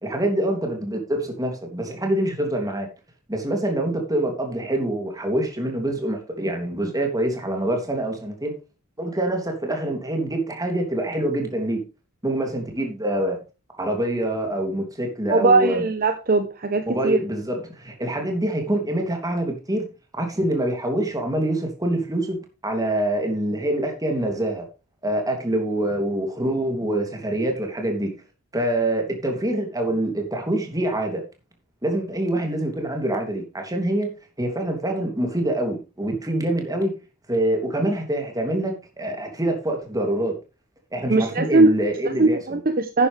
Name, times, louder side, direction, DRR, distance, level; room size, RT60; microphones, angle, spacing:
voice 1, 0.0-2.9 3.3-8.5 9.0-11.8 12.2-13.4 13.7-15.8 16.9-19.9 20.1-24.6 25.0-28.1 28.5-31.2 31.8-34.1 34.4-36.9 37.3-40.3 40.9-42.6, right 1 dB, 15° right, 2.9 m, -25 dB
voice 2, 15.3-17.2 41.1-41.7 42.0-43.1, right 3 dB, 40° right, 0.9 m, -19 dB
11.5 x 9.6 x 3.4 m
head